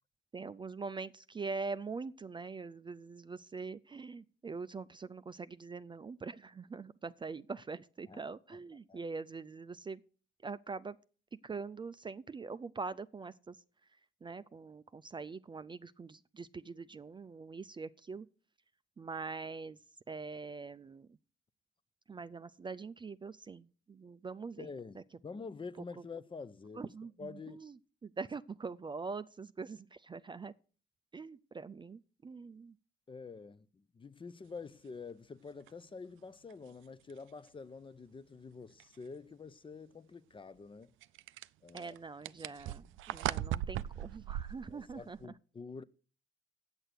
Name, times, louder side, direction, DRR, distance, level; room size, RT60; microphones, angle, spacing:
voice 1, 0.3-10.0 10.4-11.0 11.4-13.6 14.2-18.3 19.0-19.8 20.1-21.1 22.1-24.7 26.8-27.7 28.0-30.5 31.1-32.7 41.7-45.2, right 4 dB, 25° right, 0.4 m, -43 dB
voice 2, 24.6-26.9 27.2-27.6 33.1-40.9 41.6-42.0 44.7-45.8, left 4 dB, 25° left, 0.6 m, -47 dB
sound 1, 35.7-35.8 36.5-36.6 37.1-37.2 38.8-38.9 41.0-45.2, right 13 dB, 85° right, 0.4 m, -38 dB
8.9 x 6.6 x 8.1 m
cardioid pair, 90°, 20 cm